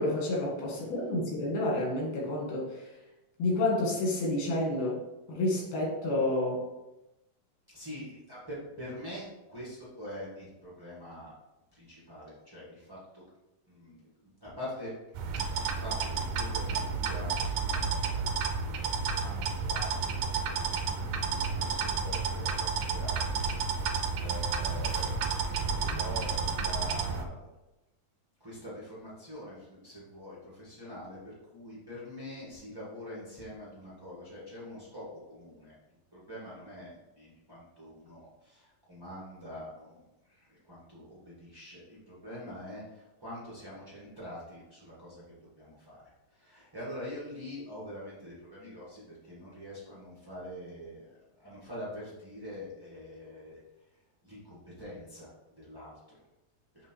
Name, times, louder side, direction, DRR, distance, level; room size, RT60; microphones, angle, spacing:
voice 1, 0.0-2.8 3.4-5.0 5.3-6.6 20.9-21.0, left 2 dB, 85° left, -4 dB, 3.8 m, -29 dB
voice 2, 7.7-11.3 11.7-13.2 13.7-14.0 14.4-14.9 15.3-18.3 18.6-25.3 25.7-27.5 28.4-35.7 36.1-40.0 40.3-45.2 45.6-46.0 46.3-53.6 54.2-55.3 55.6-55.9, equal, 35° right, -8 dB, 0.3 m, -45 dB
sound 1, 15.2-27.2, right 5 dB, 75° right, 1.8 m, -31 dB
7.7 x 3.3 x 4.6 m, 0.97 s
omnidirectional pair, 4.2 m